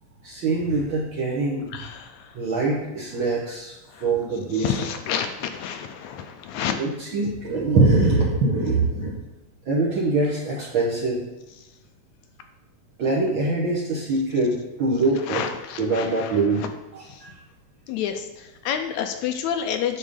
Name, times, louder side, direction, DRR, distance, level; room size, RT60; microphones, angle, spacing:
voice 1, 0.2-1.7 2.3-3.7 4.0-4.7 6.6-9.1 9.7-11.2 13.0-15.4 15.8-17.3, right 3 dB, 60° right, -3 dB, 1.4 m, -23 dB
voice 2, 1.7-2.3 3.9-4.0 4.5-6.8 15.3-16.3 17.1-17.2 17.9-20.0, left 8 dB, 80° left, 6 dB, 1.8 m, -29 dB
9.0 x 3.8 x 6.6 m, 1.0 s
omnidirectional pair, 3.4 m